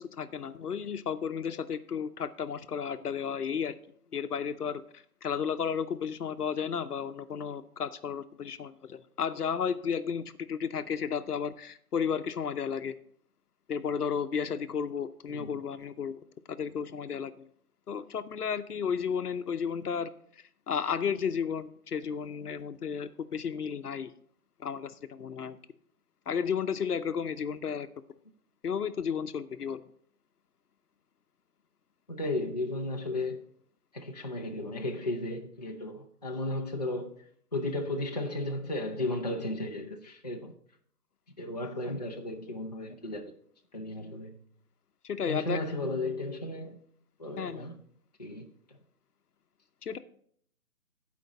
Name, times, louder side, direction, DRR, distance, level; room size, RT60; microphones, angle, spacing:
voice 1, 0.0-3.7 4.1-4.8 5.2-12.9 13.7-16.2 16.5-17.5 17.9-20.1 20.7-24.1 24.6-25.6 26.3-27.9 28.6-29.9 45.0-45.6 47.4-47.7 49.8-50.0, left 7 dB, 80° left, 0.8 m, -33 dB
voice 2, 32.1-33.4 33.9-37.1 37.5-40.5 41.4-43.3 43.7-44.3 45.3-46.8 47.2-47.7 48.2-48.5, left 2 dB, 30° left, 0.5 m, -34 dB
15.0 x 5.1 x 4.0 m
figure-of-eight pair, 160°, 46 cm